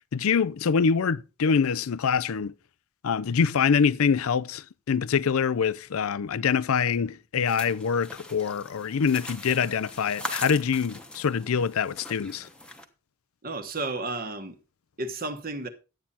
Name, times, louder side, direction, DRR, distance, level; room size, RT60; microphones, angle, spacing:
voice 1, 0.1-2.5 3.0-12.5, left 6 dB, 80° left, 0.5 m, -25 dB
sound 1, 7.4-12.8, left 1 dB, 5° left, 1.0 m, -41 dB
voice 2, 13.4-14.6 15.0-15.7, right 2 dB, 40° right, 1.4 m, -32 dB
11.5 x 8.8 x 4.2 m
head